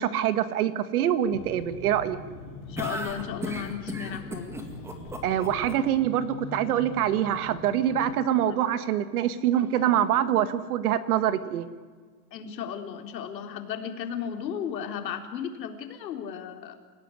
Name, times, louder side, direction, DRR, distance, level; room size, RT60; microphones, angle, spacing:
voice 1, 0.0-2.2 5.2-11.7, right 10 dB, 60° right, 12 dB, 2.0 m, -25 dB
sound 1, 1.3-8.2, left 3 dB, 35° left, 7.5 m, -42 dB
voice 2, 2.7-4.6 8.5-8.6 12.3-16.8, left 8 dB, 85° left, 5 dB, 3.9 m, -35 dB
sound 2, 2.8-5.7, right 1 dB, 5° right, 1.9 m, -35 dB
28.5 x 17.0 x 9.9 m, 1.5 s
supercardioid pair, 165°, 49 cm